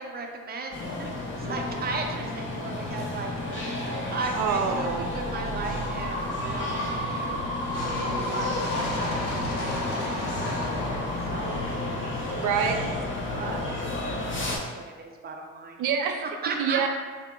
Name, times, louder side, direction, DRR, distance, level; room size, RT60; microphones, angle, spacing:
voice 1, 0.0-7.4 8.0-10.9 11.3-12.8 13.3-14.6 15.0-15.8 16.2-16.8, right 3 dB, 30° right, 2 dB, 0.6 m, -37 dB
sound 1, 0.7-14.6, left 1 dB, 40° left, 0.8 m, -31 dB
sound 2, 4.3-12.4, left 1 dB, 80° left, 0.9 m, -37 dB
voice 2, 4.3-5.1 12.4-12.8 15.8-16.2 16.6-16.9, right 7 dB, 80° right, 4 dB, 0.6 m, -26 dB
4.7 x 2.1 x 3.6 m, 1.5 s
cardioid pair, 90°, 30 cm